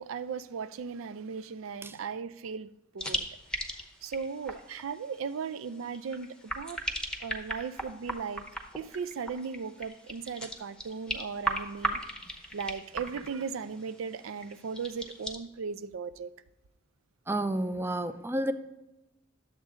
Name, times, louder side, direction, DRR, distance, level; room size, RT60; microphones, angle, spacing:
voice 1, 0.0-2.7 2.9-3.3 4.0-6.3 6.6-6.8 7.2-8.5 8.8-12.0 12.5-16.3, right 6 dB, 80° right, 13 dB, 0.4 m, -37 dB
sound 1, 3.0-15.3, right 1 dB, 5° left, 0.8 m, -37 dB
voice 2, 17.3-18.5, right 1 dB, 10° right, 10 dB, 0.3 m, -30 dB
11.0 x 7.4 x 3.7 m, 1.0 s
head